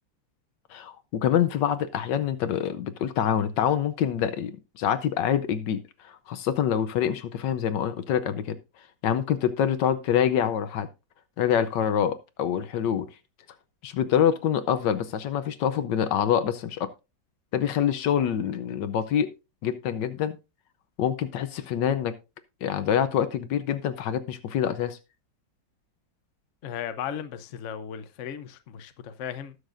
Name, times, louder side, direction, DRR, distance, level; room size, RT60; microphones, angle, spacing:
voice 1, 0.7-8.6 9.0-10.9 11.4-13.1 13.8-16.9 17.5-19.3 19.6-20.4 21.0-22.2 22.6-25.0, left 9 dB, 75° left, 1.3 m, -26 dB
voice 2, 26.6-29.6, left 9 dB, 55° left, 0.9 m, -36 dB
19.5 x 6.5 x 2.5 m
omnidirectional pair, 2.1 m